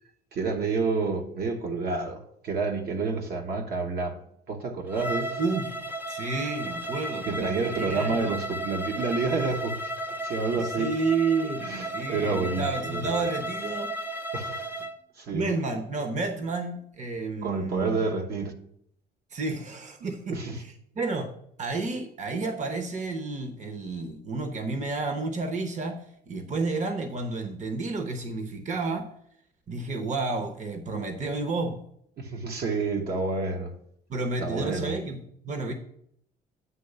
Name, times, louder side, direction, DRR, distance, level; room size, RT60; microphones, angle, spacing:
voice 1, 0.3-4.2 4.5-5.3 7.3-9.8 10.2-10.9 11.6-13.3 14.3-14.7 15.2-15.5 17.4-18.5 20.3-20.6 32.2-33.7 34.4-34.9, right 4 dB, 65° right, 1.2 m, -29 dB
Bowed string instrument, 4.9-14.9, right 1 dB, 10° right, 0.5 m, -34 dB
voice 2, 5.4-5.8 6.1-8.3 10.5-13.9 15.3-18.1 19.3-20.5 21.0-21.3 21.6-29.1 29.7-31.8 34.1-35.7, right 3 dB, 45° right, 1.0 m, -31 dB
9.4 x 3.2 x 6.7 m
cardioid pair, 90°, 18 cm